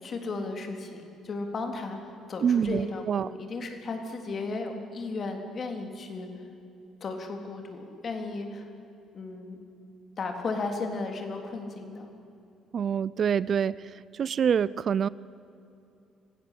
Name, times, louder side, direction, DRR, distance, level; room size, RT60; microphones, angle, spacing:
voice 1, 0.0-6.3 7.0-8.7 9.1-9.6 10.2-12.1, left 3 dB, 45° left, 4 dB, 3.7 m, -35 dB
voice 2, 2.4-3.3 12.7-13.8 14.1-15.1, right 7 dB, 50° right, 20 dB, 0.5 m, -26 dB
26.0 x 16.5 x 8.5 m, 2.8 s
supercardioid pair, 80°, 0 cm